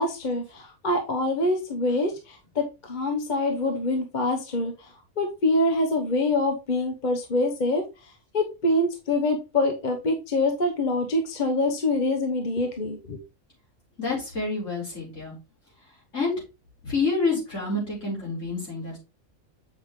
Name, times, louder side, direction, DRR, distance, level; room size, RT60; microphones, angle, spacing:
voice 1, 0.0-4.9 5.2-7.8 8.3-13.2, left 2 dB, 35° left, 3 dB, 1.1 m, -25 dB
voice 2, 14.0-15.3 16.1-16.3 16.8-19.0, left 3 dB, 60° left, -4 dB, 5.0 m, -28 dB
7.9 x 5.6 x 3.1 m, 0.28 s
omnidirectional pair, 1.4 m